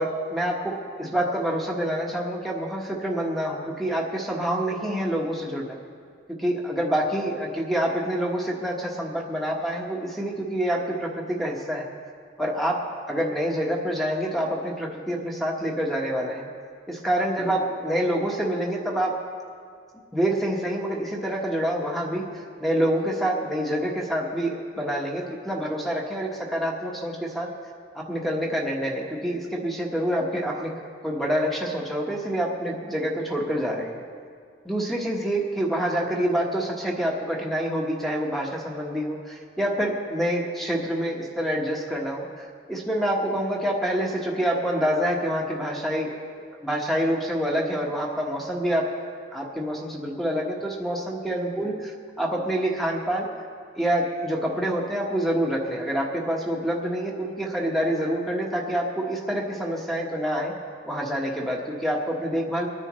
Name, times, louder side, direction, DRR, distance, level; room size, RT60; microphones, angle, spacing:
voice 1, 0.0-5.8 6.4-11.9 12.4-12.8 13.1-16.5 16.9-19.2 20.1-27.5 27.9-30.7 31.0-34.0 34.6-42.3 42.7-46.2 46.6-48.9 49.3-53.3 53.7-60.5 60.8-62.7, equal, ahead, -1 dB, 1.3 m, -27 dB
24.0 x 9.8 x 3.2 m, 2.1 s
head